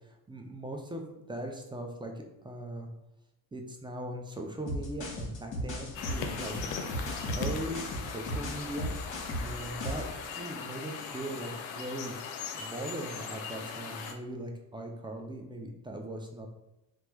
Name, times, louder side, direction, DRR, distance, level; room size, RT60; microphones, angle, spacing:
voice 1, 0.3-2.9 3.5-6.5 7.4-8.9 9.4-12.2 12.5-16.5, right 1 dB, 10° right, 2 dB, 0.5 m, -39 dB
sound 1, 4.7-10.1, equal, 40° left, 1.0 m, -36 dB
sound 2, 5.9-14.1, left 6 dB, 75° left, 0.6 m, -39 dB
3.2 x 2.1 x 3.0 m, 0.93 s
hypercardioid pair, 60°, 46 cm